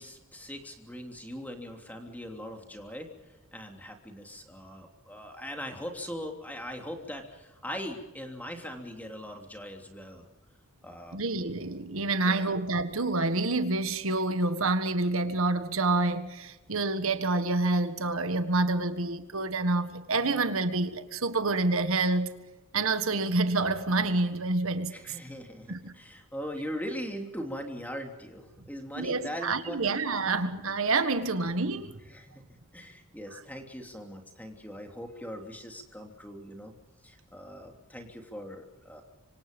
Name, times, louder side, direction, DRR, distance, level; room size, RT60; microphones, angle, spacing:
voice 1, 0.0-3.1 3.5-10.3 10.8-11.2 12.2-12.6 24.9-30.0 30.2-30.5 32.1-32.4 32.7-36.7 37.0-39.0, equal, 10° left, 3.1 m, -40 dB
voice 2, 11.1-22.3 22.7-25.2 25.7-25.9 29.0-32.0 33.3-33.4, right 3 dB, 70° right, 1.6 m, -28 dB
26.0 x 25.0 x 5.4 m
head